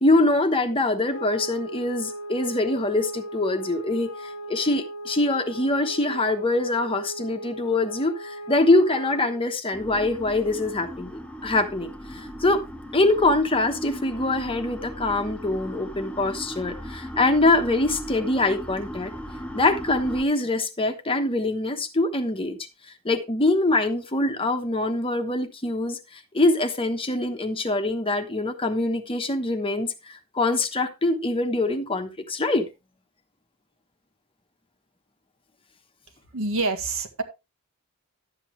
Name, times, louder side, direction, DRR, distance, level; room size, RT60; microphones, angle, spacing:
voice 1, 0.0-12.6 12.9-19.1 19.5-22.6 23.0-32.7, left 2 dB, 25° left, 1.1 m, -24 dB
sound 1, 1.1-9.5, right 1 dB, 55° left, 0.8 m, -37 dB
sound 2, 9.7-20.2, equal, 5° left, 0.8 m, -37 dB
voice 2, 36.3-37.2, right 3 dB, 65° right, 1.7 m, -26 dB
11.5 x 8.3 x 3.2 m
head